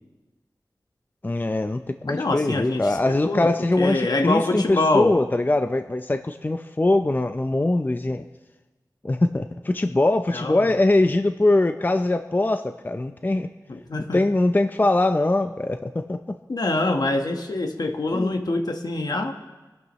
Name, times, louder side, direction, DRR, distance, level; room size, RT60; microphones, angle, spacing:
voice 1, 1.2-8.2 9.0-13.5 14.1-16.4 18.1-18.4, left 2 dB, 25° left, 7 dB, 0.5 m, -22 dB
voice 2, 2.1-5.1 10.3-10.7 13.7-14.2 16.5-19.3, left 2 dB, 70° left, 5 dB, 1.3 m, -25 dB
24.0 x 12.0 x 3.1 m, 1.2 s
wide cardioid pair, 75°, 7 cm